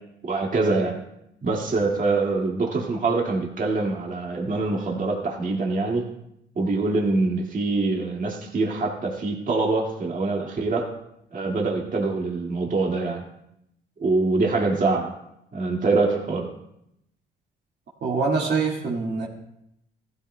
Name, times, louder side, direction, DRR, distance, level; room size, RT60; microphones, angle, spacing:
voice 1, 0.2-1.0 1.4-6.1 6.6-10.9 11.3-13.3 14.0-15.1 15.5-16.5, right 3 dB, 40° right, 0 dB, 2.0 m, -24 dB
voice 2, 18.0-19.3, right 4 dB, 60° right, -2 dB, 1.9 m, -24 dB
15.5 x 13.0 x 2.2 m, 0.80 s
cardioid pair, 90°, 20 cm